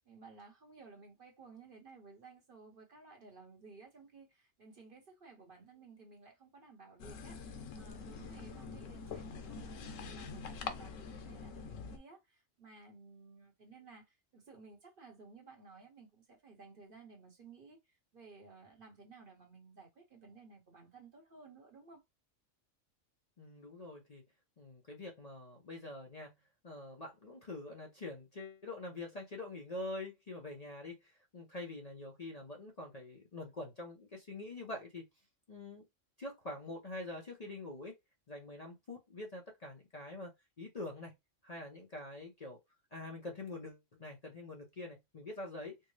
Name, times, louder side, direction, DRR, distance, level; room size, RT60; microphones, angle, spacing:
voice 1, 0.0-22.0, right 4 dB, 45° right, 1.1 m, -56 dB
sound 1, 7.0-12.0, left 5 dB, 85° left, 1.1 m, -45 dB
voice 2, 23.4-24.2 24.6-26.4 26.6-35.1 35.5-35.8 36.2-38.0 38.3-41.1 41.4-42.6 42.9-45.8, left 2 dB, 40° left, 0.6 m, -45 dB
4.4 x 2.0 x 3.1 m
omnidirectional pair, 1.3 m